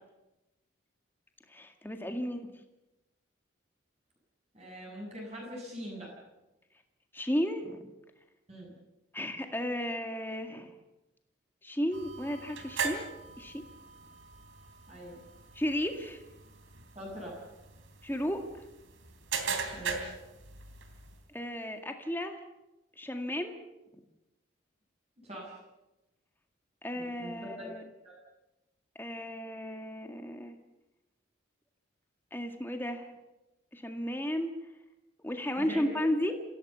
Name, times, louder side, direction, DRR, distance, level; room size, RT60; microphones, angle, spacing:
voice 1, 1.5-2.5 7.1-7.9 9.1-10.7 11.6-13.1 13.4-13.6 15.5-16.2 18.0-18.6 21.3-22.4 23.0-23.6 26.8-27.8 29.0-30.6 32.3-33.1 33.7-34.5 35.2-36.3, equal, 10° left, 5 dB, 2.0 m, -34 dB
voice 2, 4.5-6.1 8.5-8.7 14.9-15.2 16.9-17.4 19.7-20.2 25.2-25.6 27.0-27.7 28.0-28.2 35.6-36.0, equal, 30° right, -1 dB, 7.9 m, -42 dB
sound 1, 11.9-21.2, right 5 dB, 85° right, 3.1 m, -40 dB
27.5 x 16.5 x 7.0 m, 0.97 s
head